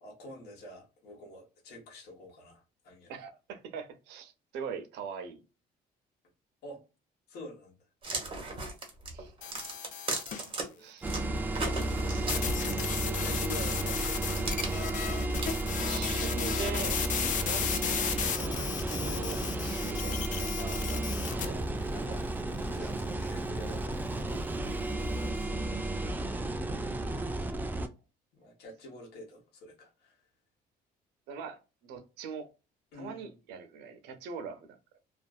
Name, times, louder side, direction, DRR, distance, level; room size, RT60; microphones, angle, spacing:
voice 1, 0.0-3.1 6.6-6.8 7.3-7.7 8.2-8.3 10.3-10.9 12.5-14.7 17.2-17.4 20.5-20.8 21.3-26.2 28.3-30.2 32.9-33.3, left 1 dB, 75° left, 1.1 m, -48 dB
voice 2, 3.1-5.4 9.1-9.5 10.8-11.1 15.9-17.0 17.4-20.2 20.7-21.0 27.1-27.6 31.3-32.5 32.9-34.8, right 6 dB, 85° right, 0.6 m, -42 dB
sound 1, 8.0-10.6 11.0-12.8 13.6-16.3, right 3 dB, 30° right, 1.0 m, -38 dB
sound 2, 9.4-10.5 12.3-21.5, left 8 dB, 50° left, 0.5 m, -34 dB
sound 3, 11.0-27.9, right 2 dB, 10° right, 0.3 m, -33 dB
2.5 x 2.3 x 2.3 m
cardioid pair, 110°, 17 cm